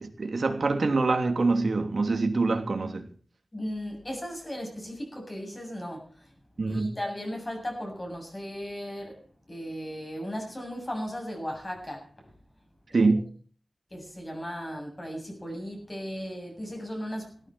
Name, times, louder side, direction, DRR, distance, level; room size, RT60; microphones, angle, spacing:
voice 1, 0.0-3.1 6.6-6.9 12.9-13.2, right 3 dB, 60° right, 3.0 m, -25 dB
voice 2, 3.5-6.3 6.7-9.2 9.5-12.3 13.9-17.5, equal, 25° left, 7.8 m, -36 dB
18.0 x 13.0 x 4.5 m
wide cardioid pair, 100°, 0 cm